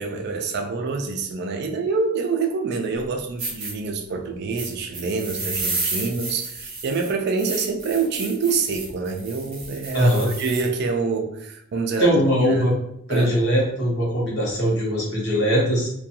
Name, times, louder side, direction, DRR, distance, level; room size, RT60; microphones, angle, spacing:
voice 1, 0.0-12.1 12.4-12.7 13.1-13.4, right 4 dB, 50° right, 4 dB, 0.3 m, -26 dB
sound 1, 3.0-3.1 3.4-3.7 4.6-10.7, right 3 dB, 25° right, 0.8 m, -31 dB
voice 2, 9.9-10.3 11.9-12.7 13.1-15.9, equal, 55° left, -4 dB, 0.8 m, -21 dB
2.5 x 2.2 x 2.7 m, 0.78 s
head